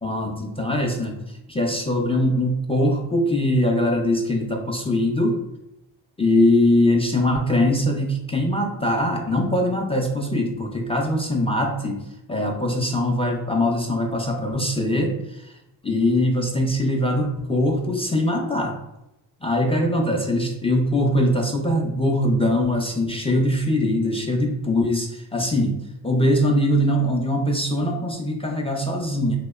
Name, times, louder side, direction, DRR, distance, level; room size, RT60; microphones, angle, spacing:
voice 1, 0.0-5.4 6.2-12.0 12.3-15.5 15.8-18.8 19.4-29.4, left 1 dB, 15° left, 1 dB, 0.4 m, -22 dB
2.8 x 2.1 x 2.2 m, 0.89 s
cardioid pair, 45°, 46 cm